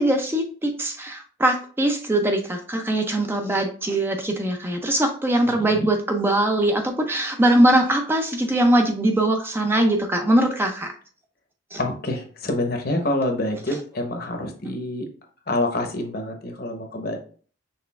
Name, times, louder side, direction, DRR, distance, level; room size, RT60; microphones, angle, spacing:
voice 1, 0.0-10.9 11.7-11.8, right 1 dB, 10° right, 4 dB, 0.4 m, -21 dB
voice 2, 5.5-5.9 11.8-15.1 15.5-17.2, left 1 dB, 50° left, 4 dB, 0.9 m, -27 dB
5.8 x 3.3 x 2.3 m, 0.42 s
head